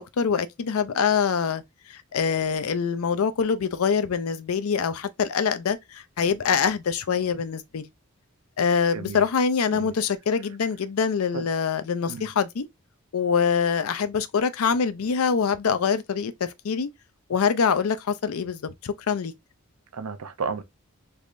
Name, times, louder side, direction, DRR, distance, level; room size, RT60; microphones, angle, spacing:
voice 1, 0.0-1.6 1.9-7.9 8.6-12.7 13.1-16.9 17.3-19.3, left 6 dB, 75° left, 0.4 m, -24 dB
voice 2, 8.9-9.2 9.7-9.9 11.3-11.5 12.1-12.3 19.9-20.6, right 5 dB, 80° right, 0.6 m, -33 dB
3.4 x 3.2 x 2.5 m
head